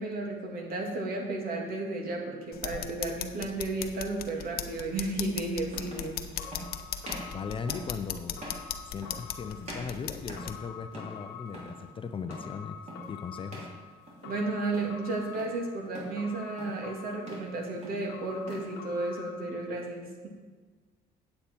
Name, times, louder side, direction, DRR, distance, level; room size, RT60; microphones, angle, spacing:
voice 1, 0.0-6.2 14.2-20.3, right 2 dB, 60° right, 1 dB, 2.1 m, -33 dB
sound 1, 2.5-10.5, left 9 dB, 65° left, 0.7 m, -38 dB
sound 2, 3.5-3.7 5.0-5.1 5.7-6.1 6.5-6.7 7.0-7.3 7.7-8.0 8.4-8.7 9.0-9.4 9.6-10.6 10.9-11.2 11.5-11.8 12.3-12.6 12.9-13.1 13.5-13.8 14.1-14.4 14.7-15.5 15.9-16.2 16.6-16.9 17.2-17.5 17.8-18.7, right 1 dB, 40° right, 3.1 m, -43 dB
sound 3, 6.4-19.7, left 7 dB, 90° left, 1.1 m, -47 dB
voice 2, 7.3-8.4 8.9-12.8 13.1-13.7, left 6 dB, 30° left, 9 dB, 0.5 m, -38 dB
8.7 x 8.4 x 4.4 m, 1.4 s
cardioid pair, 110°, 17 cm